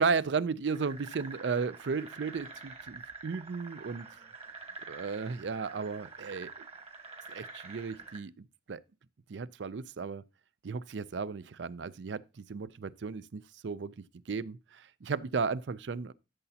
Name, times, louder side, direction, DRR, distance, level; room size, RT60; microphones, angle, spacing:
voice 1, 0.0-4.1 4.9-6.5 7.3-8.8 9.3-10.2 10.6-12.2 12.5-13.9 14.3-14.6 15.0-16.1, right 5 dB, 75° right, 0.5 m, -34 dB
sound 1, 0.7-8.2, right 4 dB, 35° right, 1.6 m, -47 dB
12.5 x 6.8 x 2.8 m
head